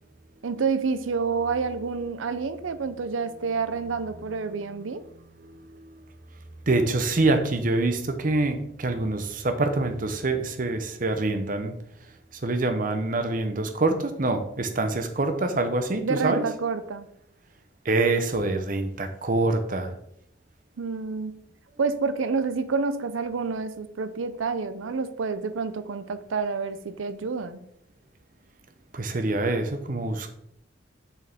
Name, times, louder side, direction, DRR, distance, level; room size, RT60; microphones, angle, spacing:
voice 1, 0.4-5.0 16.0-17.1 20.8-21.4 21.8-27.6, right 4 dB, 85° right, 12 dB, 0.5 m, -28 dB
voice 2, 5.4-5.9 6.7-11.7 12.4-16.4 17.8-19.9 28.9-30.3, right 2 dB, 45° right, 7 dB, 0.8 m, -25 dB
6.5 x 6.4 x 3.5 m, 0.74 s
head